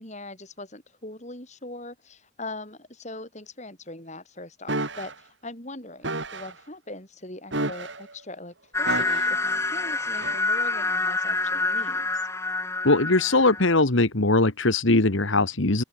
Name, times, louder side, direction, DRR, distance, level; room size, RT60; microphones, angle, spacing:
voice 1, 0.0-12.3, left 2 dB, 35° left, 6.3 m, -41 dB
sound 1, 4.7-5.1 6.0-6.5 7.5-8.1 8.8-9.4 10.2-10.4, right 2 dB, 60° right, 5.4 m, -31 dB
sound 2, 8.7-13.8, left 3 dB, 15° left, 0.9 m, -27 dB
voice 2, 12.8-15.8, left 2 dB, 70° left, 1.8 m, -20 dB
open air
head